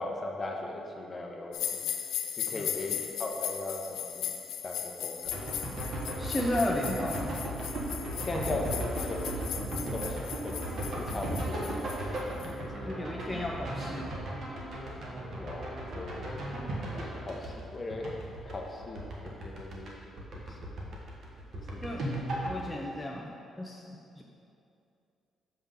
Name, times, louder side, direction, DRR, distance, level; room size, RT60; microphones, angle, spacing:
voice 1, 0.0-1.8 2.3-4.3 4.6-5.4 8.2-11.8 12.6-12.9 13.3-13.4 15.3-16.4 16.9-18.1 18.5-20.7 21.5-21.8, left 2 dB, 30° left, 0 dB, 0.9 m, -39 dB
sound 1, 1.5-12.5, left 10 dB, 85° left, 0.5 m, -38 dB
voice 2, 2.5-3.0 6.2-7.4 12.4-12.5 12.8-14.2 21.8-24.2, left 1 dB, 5° left, -2 dB, 0.6 m, -34 dB
sound 2, 5.2-19.9 20.2-22.6, right 1 dB, 60° right, 1.3 m, -36 dB
6.9 x 5.6 x 3.7 m, 2.6 s
cardioid pair, 90°, 0 cm